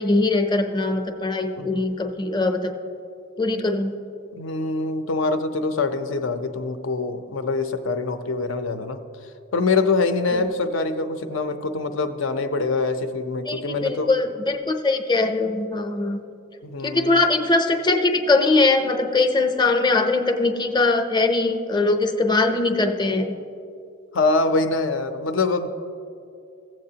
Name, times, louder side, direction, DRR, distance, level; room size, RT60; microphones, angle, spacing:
voice 1, 0.0-2.7 3.4-4.0 10.3-10.4 13.5-16.2 16.8-23.3, left 3 dB, 20° left, 5 dB, 0.6 m, -21 dB
voice 2, 4.3-9.0 9.5-14.1 16.6-17.3 24.1-25.7, left 3 dB, 75° left, 8 dB, 0.6 m, -24 dB
16.5 x 7.6 x 2.8 m, 2.6 s
head